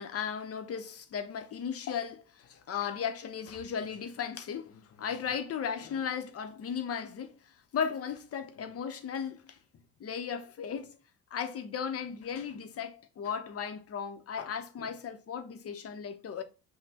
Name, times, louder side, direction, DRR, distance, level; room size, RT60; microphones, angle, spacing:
voice 1, 0.0-9.6 10.0-11.0 11.3-16.4, left 7 dB, 50° left, 0.7 m, -36 dB
5.9 x 2.2 x 2.8 m
cardioid pair, 90°, 30 cm